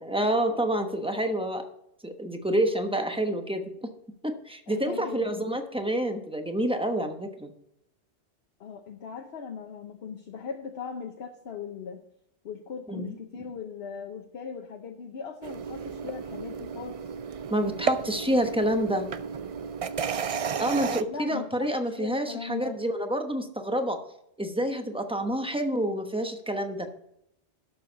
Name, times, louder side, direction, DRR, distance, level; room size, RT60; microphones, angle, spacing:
voice 1, 0.0-1.7 2.0-3.9 4.2-7.5 12.9-13.1 17.5-19.1 20.6-24.0 24.4-26.9, right 1 dB, 5° right, 5 dB, 0.9 m, -28 dB
voice 2, 4.7-5.2 8.6-12.0 12.4-17.0 21.1-22.8, left 6 dB, 65° left, 4 dB, 1.1 m, -39 dB
sound 1, 15.4-21.0, right 6 dB, 60° right, 0.3 m, -33 dB
12.0 x 6.8 x 4.0 m, 0.77 s
omnidirectional pair, 1.2 m